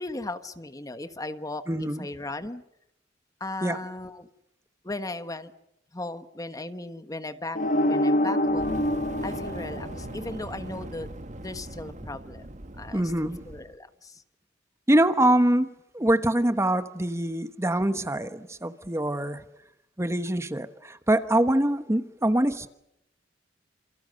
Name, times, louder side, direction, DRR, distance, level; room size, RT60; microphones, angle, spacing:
voice 1, 0.0-2.6 3.4-4.3 4.8-5.5 5.9-7.6 7.9-8.7 9.2-11.1 11.4-12.5 12.8-14.2, left 2 dB, 20° left, 1.3 m, -37 dB
voice 2, 1.7-2.1 3.6-3.8 12.9-13.4 14.9-15.7 15.9-19.4 20.0-22.7, right 1 dB, 15° right, 1.2 m, -24 dB
sound 1, 7.6-10.5, left 1 dB, 45° left, 1.5 m, -26 dB
Fire, 8.5-13.7, right 1 dB, 40° right, 1.5 m, -40 dB
28.5 x 28.0 x 6.7 m
head